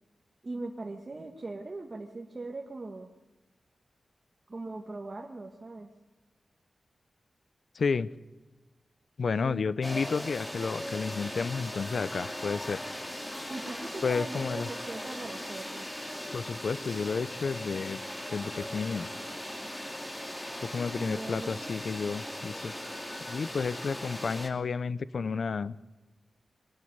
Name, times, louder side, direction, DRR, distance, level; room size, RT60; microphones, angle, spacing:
voice 1, 0.4-3.1 4.5-5.9 9.4-9.8 13.5-15.9 20.9-21.5, right 2 dB, 35° right, 1 dB, 1.7 m, -40 dB
voice 2, 7.8-8.1 9.2-12.8 14.0-14.7 16.3-18.0 18.3-19.1 20.6-22.7 23.3-25.8, left 5 dB, 65° left, 17 dB, 0.7 m, -31 dB
sound 1, 9.8-24.5, left 1 dB, 15° left, 2.7 m, -39 dB
24.0 x 12.0 x 9.6 m, 1.1 s
wide cardioid pair, 115°, 0 cm